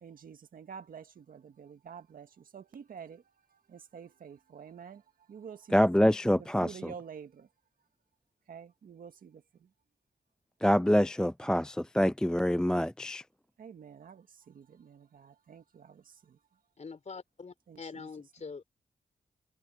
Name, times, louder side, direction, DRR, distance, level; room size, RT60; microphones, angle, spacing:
voice 1, 0.0-3.2 3.7-5.0 5.3-7.5 8.5-9.4 13.6-16.4 17.7-18.1, right 7 dB, 80° right, 1.9 m, -48 dB
voice 2, 5.7-6.9 10.6-13.2, equal, 5° left, 0.5 m, -26 dB
voice 3, 16.8-18.6, left 4 dB, 55° left, 4.6 m, -44 dB
cardioid pair, 55°, 14 cm